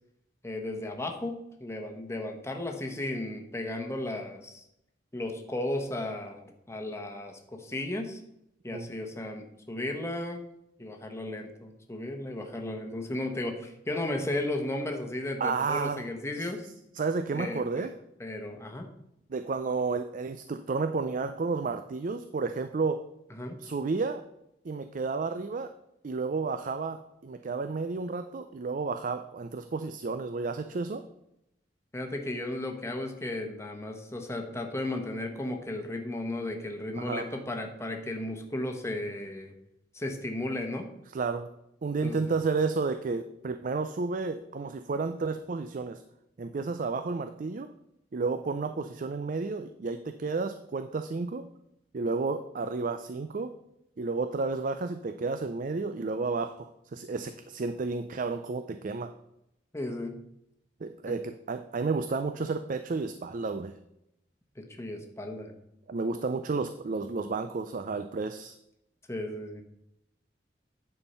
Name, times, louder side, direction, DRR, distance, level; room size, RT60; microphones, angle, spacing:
voice 1, 0.4-1.3 1.6-4.6 5.1-8.2 8.6-10.4 10.8-16.7 17.3-17.9 18.2-18.9 23.3-23.6 31.9-39.5 39.9-40.9 42.0-42.2 59.7-60.2 64.6-65.5 69.1-69.6, left 1 dB, 15° left, 3 dB, 1.1 m, -35 dB
voice 2, 15.4-16.0 17.0-17.9 19.3-23.0 23.6-24.2 24.6-25.7 26.0-31.0 37.0-37.3 41.1-41.5 41.8-46.0 46.4-47.7 48.1-51.4 51.9-53.5 54.0-59.1 60.8-63.7 65.9-68.6, right 4 dB, 50° right, 9 dB, 0.4 m, -31 dB
9.9 x 4.5 x 5.5 m, 0.81 s
head